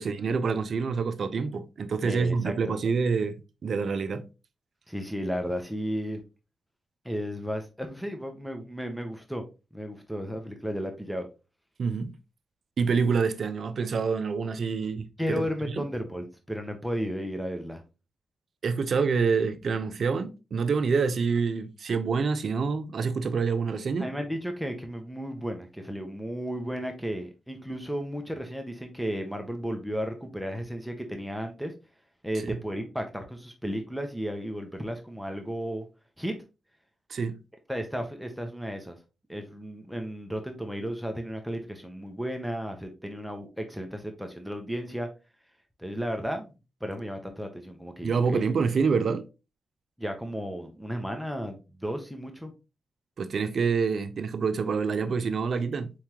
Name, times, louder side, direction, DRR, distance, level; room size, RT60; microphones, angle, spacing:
voice 1, 0.0-4.3 11.8-12.1 12.8-15.4 18.6-24.1 32.4-32.6 37.1-37.4 48.0-49.3 53.2-55.9, right 5 dB, 60° right, 0.6 m, -27 dB
voice 2, 2.0-2.7 4.9-6.2 7.0-9.5 9.7-11.3 15.2-17.8 24.0-31.7 32.2-35.9 36.2-36.3 37.7-39.0 39.3-45.1 45.8-46.5 46.8-48.4 50.0-52.5, equal, ahead, 1.0 m, -34 dB
4.6 x 3.5 x 3.0 m
cardioid pair, 95°, 0 cm